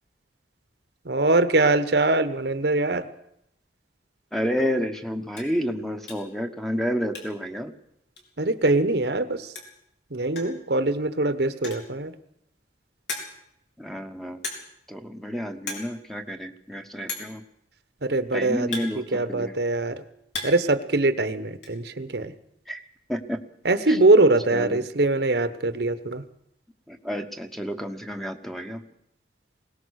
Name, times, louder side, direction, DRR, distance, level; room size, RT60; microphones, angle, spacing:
voice 1, 1.0-3.1 8.4-9.5 10.1-12.1 18.0-20.0 20.4-22.3 23.6-26.2, right 2 dB, 65° right, 11 dB, 1.2 m, -22 dB
voice 2, 4.3-7.7 13.8-14.4 14.9-17.4 18.3-19.5 22.7-22.8 23.1-23.4 23.9-24.0 24.5-24.8 26.9-28.8, equal, ahead, 6 dB, 1.2 m, -30 dB
sound 1, 5.4-5.6 6.1-6.4 6.7-7.5 7.8-7.9 8.2-8.3 9.3-9.4 9.6-9.9 10.4-10.7 11.5-12.0 12.5-12.6 13.1-13.6 14.4-14.9 15.1-15.3 15.6-15.9 16.2-16.3 17.1-17.4 18.2-19.5 20.0-20.7 21.0-21.7, left 3 dB, 70° left, 4.9 m, -36 dB
21.0 x 19.0 x 6.5 m, 0.76 s
head